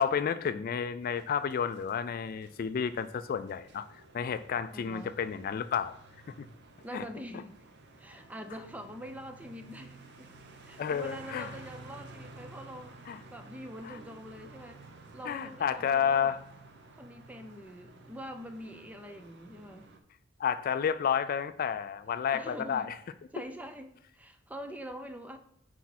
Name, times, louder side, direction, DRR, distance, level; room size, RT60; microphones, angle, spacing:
voice 1, 0.0-3.8 4.1-5.9 6.4-6.5 6.9-7.0 10.8-11.5 13.1-13.2 13.9-14.0 15.3-16.4 20.4-22.9, left 7 dB, 45° left, 0.3 m, -31 dB
sound 1, 1.0-20.0, right 2 dB, 55° right, 0.8 m, -53 dB
voice 2, 4.7-5.1 6.8-7.6 8.0-10.3 10.6-13.0 13.3-14.8 15.1-16.3 17.0-19.9 22.3-22.9 23.3-25.4, equal, 5° right, 0.5 m, -44 dB
6.3 x 4.6 x 4.2 m
head